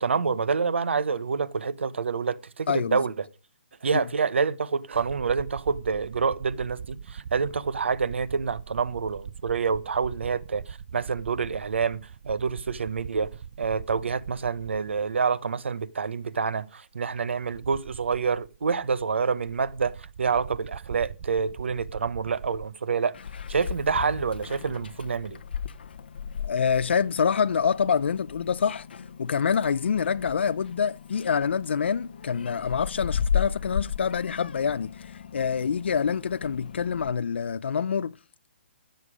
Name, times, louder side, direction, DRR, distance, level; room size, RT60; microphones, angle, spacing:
voice 1, 0.0-3.2 3.8-12.0 12.3-13.3 13.6-23.1 23.5-25.4, right 5 dB, 90° right, 1.0 m, -27 dB
voice 2, 2.7-3.0 26.4-28.9 29.2-38.1, left 6 dB, 75° left, 0.5 m, -26 dB
sound 1, 4.9-15.5 15.8-15.9 17.0-22.7, right 7 dB, 35° right, 0.5 m, -42 dB
Meow, 23.1-37.1, left 8 dB, 60° left, 0.9 m, -35 dB
14.5 x 6.8 x 5.0 m
hypercardioid pair, 175°, 6 cm